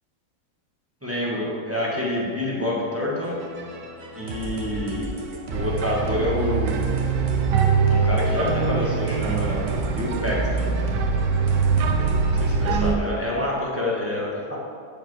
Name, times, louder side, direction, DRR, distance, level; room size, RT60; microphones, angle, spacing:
voice 1, 1.0-3.4 4.2-5.1 5.5-6.9 7.9-10.7 12.3-14.6, left 1 dB, 10° right, -5 dB, 1.1 m, -27 dB
sound 1, 3.2-13.0, left 1 dB, 35° right, 0.9 m, -34 dB
sound 2, 5.5-12.9, right 5 dB, 85° right, 1.3 m, -23 dB
7.5 x 5.1 x 6.1 m, 2.3 s
omnidirectional pair, 1.8 m